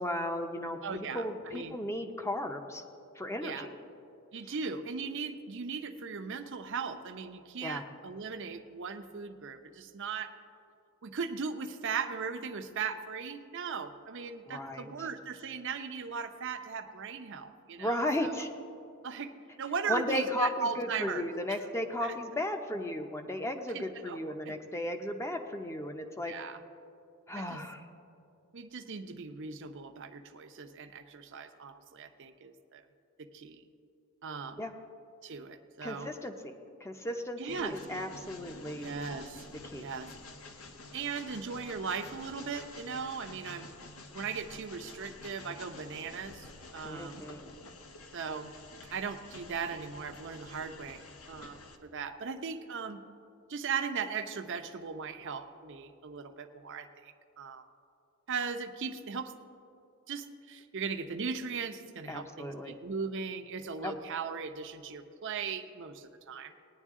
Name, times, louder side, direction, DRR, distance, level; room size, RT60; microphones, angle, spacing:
voice 1, 0.0-2.8 3.2-3.7 7.6-7.8 14.5-14.9 17.8-18.5 19.9-26.3 27.3-27.8 34.6-34.7 35.8-38.9 39.6-39.9 46.8-47.5 62.1-62.8 63.8-63.9, left 1 dB, 15° left, 5 dB, 0.6 m, -35 dB
voice 2, 0.8-1.3 1.5-1.8 3.4-3.7 4.3-10.3 11.0-18.3 19.0-19.3 19.6-21.7 22.0-22.2 23.7-24.6 26.3-26.6 27.4-27.6 28.5-32.8 33.2-33.6 34.2-34.6 35.2-36.1 37.4-37.8 38.8-39.5 39.8-40.1 40.9-43.7 44.1-47.3 48.1-48.5 48.9-53.0 53.5-57.6 58.3-59.3 60.1-66.5, right 5 dB, 55° right, 8 dB, 0.6 m, -38 dB
Train, 37.5-51.8, left 2 dB, 90° left, 1.0 m, -49 dB
18.0 x 10.0 x 3.7 m, 2.6 s
head